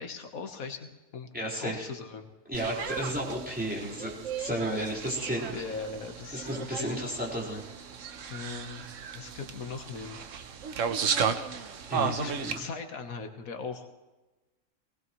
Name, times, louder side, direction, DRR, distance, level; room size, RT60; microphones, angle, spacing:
voice 1, 0.0-1.3 1.6-2.3 5.5-7.0 8.3-8.8 9.1-10.2 12.0-13.9, left 5 dB, 85° left, 5 dB, 1.7 m, -39 dB
voice 2, 1.3-1.9 2.5-5.6 6.3-7.6 8.8-8.9 11.9-12.6, right 1 dB, 5° right, -5 dB, 4.6 m, -33 dB
sound 1, 2.5-12.6, right 6 dB, 65° right, 1.2 m, -35 dB
20.0 x 19.0 x 3.2 m, 1.1 s
omnidirectional pair, 1.4 m